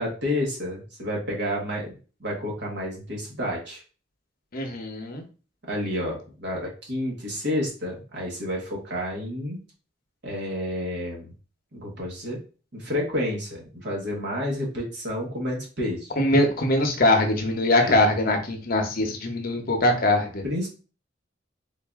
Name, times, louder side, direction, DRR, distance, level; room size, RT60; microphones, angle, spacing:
voice 1, 0.0-1.9 2.2-3.8 5.7-9.6 10.2-11.3 11.7-12.4 12.7-16.1 17.8-18.0 20.4-20.7, left 1 dB, 65° right, -2 dB, 1.4 m, -30 dB
voice 2, 4.5-5.2 16.2-20.4, left 1 dB, 50° left, 4 dB, 0.8 m, -22 dB
3.8 x 2.6 x 3.6 m, 0.36 s
head